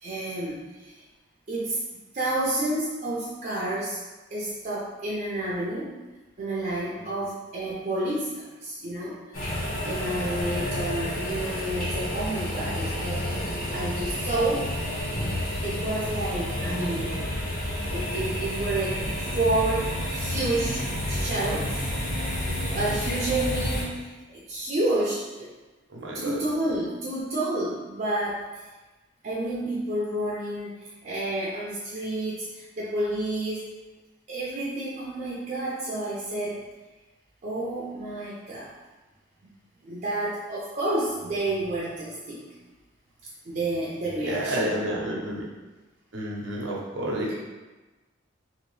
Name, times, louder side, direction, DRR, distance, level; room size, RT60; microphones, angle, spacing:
voice 1, 0.0-1.0 1.5-1.8 2.1-4.0 4.3-6.0 6.4-13.4 13.7-14.7 15.6-17.3 17.9-19.1 19.3-21.9 22.7-25.5 26.1-28.6 29.2-33.6 34.3-36.6 37.4-38.7 39.8-42.5 43.5-44.7, right 1 dB, 45° right, -6 dB, 0.5 m, -30 dB
sound 1, 9.3-23.8, left 1 dB, 45° left, 1.0 m, -30 dB
voice 2, 25.9-26.4 44.2-45.4 46.1-47.3, right 1 dB, 75° right, -3 dB, 0.7 m, -30 dB
2.9 x 2.8 x 3.1 m, 1.2 s
head